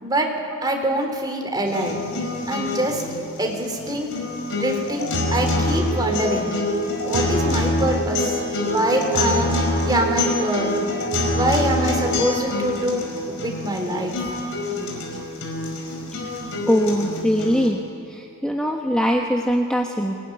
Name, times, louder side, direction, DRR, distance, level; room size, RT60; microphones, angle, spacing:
voice 1, 0.6-2.0 2.5-3.0 3.4-4.1 4.5-6.5 7.0-10.7 11.3-14.3, right 1 dB, 20° right, 2 dB, 3.5 m, -24 dB
sound 1, 1.7-17.7, left 1 dB, 65° left, 5.1 m, -25 dB
voice 2, 16.7-17.8 18.1-20.1, equal, 5° left, 0 dB, 1.3 m, -21 dB
24.0 x 20.0 x 9.9 m, 2.5 s
head